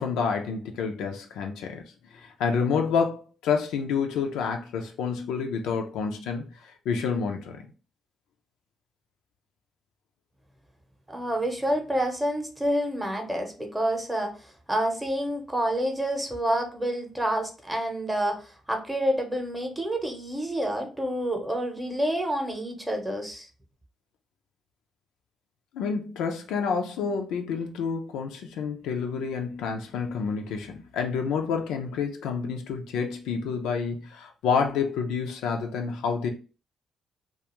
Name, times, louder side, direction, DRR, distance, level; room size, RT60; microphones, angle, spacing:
voice 1, 0.0-1.8 2.1-7.7 25.7-36.3, left 6 dB, 90° left, 0.4 m, -29 dB
voice 2, 11.1-14.3 14.7-23.5, right 1 dB, 10° right, 0.7 m, -28 dB
2.4 x 2.3 x 2.9 m
cardioid pair, 90°, 0 cm